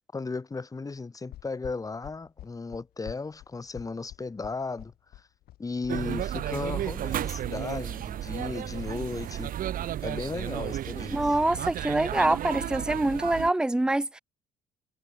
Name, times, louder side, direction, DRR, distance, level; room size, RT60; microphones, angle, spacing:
voice 1, 0.1-5.3 5.6-9.5 10.0-11.4, left 4 dB, 20° left, 2.2 m, -35 dB
sound 1, 1.3-6.6, left 14 dB, 65° left, 0.8 m, -46 dB
sound 2, 5.9-13.5, right 11 dB, 55° right, 1.1 m, -33 dB
voice 2, 11.1-14.2, right 1 dB, 5° right, 0.7 m, -25 dB
cardioid pair, 110°, 17 cm